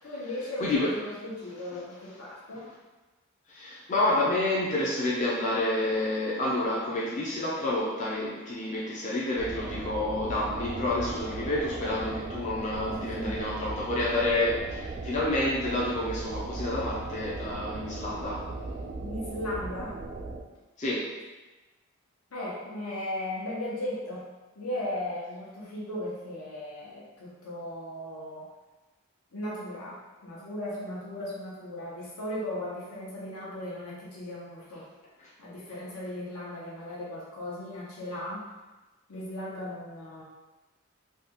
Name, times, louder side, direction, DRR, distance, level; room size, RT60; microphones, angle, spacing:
voice 1, 0.0-2.7 12.8-13.4 19.0-20.0 22.3-24.2 24.6-28.5 29.3-34.9 35.4-38.5 39.1-40.2, left 1 dB, 75° left, -5 dB, 0.9 m, -37 dB
voice 2, 0.6-0.9 3.5-18.5 20.8-21.1, left 1 dB, 30° left, -5 dB, 0.4 m, -29 dB
sound 1, 9.4-20.4, right 3 dB, 40° right, 0.3 m, -37 dB
3.3 x 2.3 x 2.9 m, 1.2 s
head